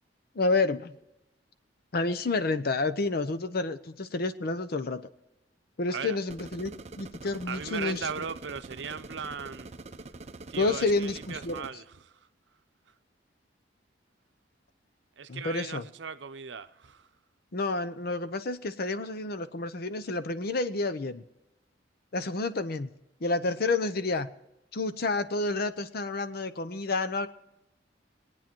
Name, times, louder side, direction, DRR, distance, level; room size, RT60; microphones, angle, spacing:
voice 1, 0.3-0.9 1.9-5.1 5.8-6.7 7.0-8.1 10.6-11.7 15.3-15.9 17.5-21.2 22.1-22.9 23.2-24.3 24.7-27.3, left 3 dB, 55° left, 0.7 m, -29 dB
sound 1, 6.3-11.7, right 3 dB, 35° right, 0.6 m, -45 dB
voice 2, 7.5-9.7 10.5-12.2 15.2-17.1, right 6 dB, 70° right, 0.7 m, -38 dB
21.5 x 9.0 x 4.5 m
head